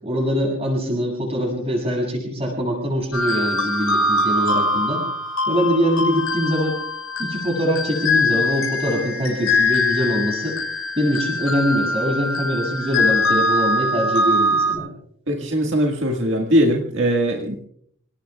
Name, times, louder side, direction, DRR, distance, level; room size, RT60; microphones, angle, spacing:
voice 1, 0.0-5.0 5.5-6.8 7.2-10.6 11.0-14.9, equal, 30° right, -2 dB, 7.2 m, -23 dB
sound 1, 3.1-14.7, left 2 dB, 80° left, 6.5 m, -22 dB
voice 2, 15.3-17.6, equal, 60° right, 1 dB, 1.9 m, -20 dB
29.5 x 18.5 x 2.4 m, 0.67 s
head